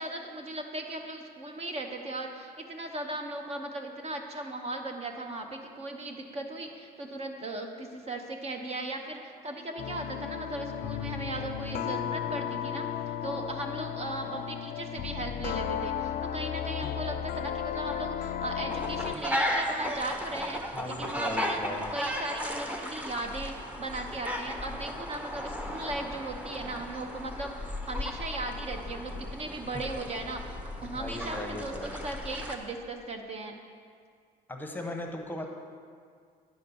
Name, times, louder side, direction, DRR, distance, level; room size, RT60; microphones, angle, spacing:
voice 1, 0.0-33.6, right 2 dB, 40° right, 4 dB, 0.9 m, -37 dB
sound 1, 9.8-19.3, left 9 dB, 60° left, 0.5 m, -34 dB
sound 2, 18.7-32.6, left 1 dB, 10° right, 0.9 m, -35 dB
voice 2, 20.7-21.9 30.9-32.0 34.5-35.5, left 1 dB, 10° left, 3 dB, 1.0 m, -37 dB
9.5 x 5.6 x 6.9 m, 2.1 s
cardioid pair, 110°, 17 cm